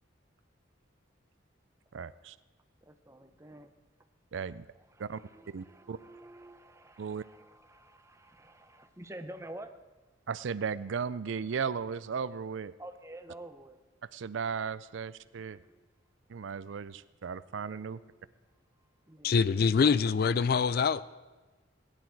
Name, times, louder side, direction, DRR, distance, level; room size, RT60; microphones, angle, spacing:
voice 1, 1.9-2.4 4.3-4.6 5.0-5.2 5.5-6.0 7.0-7.2 10.3-12.7 14.1-15.6 16.3-18.0, right 6 dB, 70° right, 17 dB, 0.4 m, -36 dB
voice 2, 2.8-3.7 4.4-4.5 4.9-9.7 12.8-13.8 15.4-15.9 17.5-18.3 19.1-19.5, right 1 dB, 15° right, 8 dB, 0.7 m, -49 dB
voice 3, 19.2-21.2, left 5 dB, 50° left, 17 dB, 0.4 m, -25 dB
18.0 x 10.5 x 4.6 m, 1.2 s
head